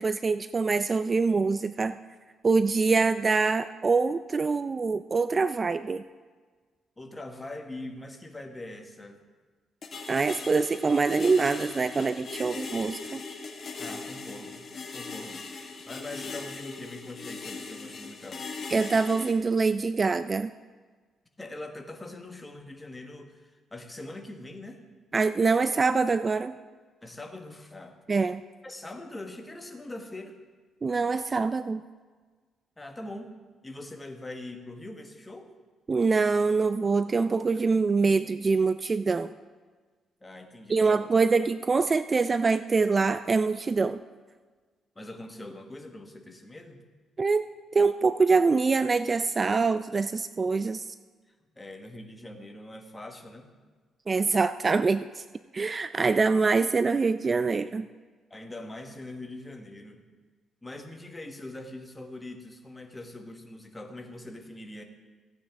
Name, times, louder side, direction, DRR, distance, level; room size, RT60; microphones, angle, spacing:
voice 1, 0.0-2.0 2.4-6.0 10.1-13.2 18.7-20.5 25.1-26.5 28.1-28.4 30.8-31.8 35.9-39.3 40.7-44.0 47.2-47.4 47.7-50.9 54.1-55.2 55.5-57.9, right 4 dB, 35° right, 12 dB, 0.3 m, -24 dB
voice 2, 7.0-9.2 13.8-15.5 15.9-18.5 21.4-24.8 27.0-28.0 28.6-30.3 32.8-33.4 33.6-35.5 40.2-41.1 44.9-46.8 51.6-53.5 58.3-60.0 60.6-64.8, left 2 dB, 15° left, 4 dB, 1.3 m, -42 dB
sound 1, 9.8-19.3, left 4 dB, 45° left, 1.3 m, -39 dB
15.5 x 8.7 x 3.5 m, 1.4 s
cardioid pair, 90°, 0 cm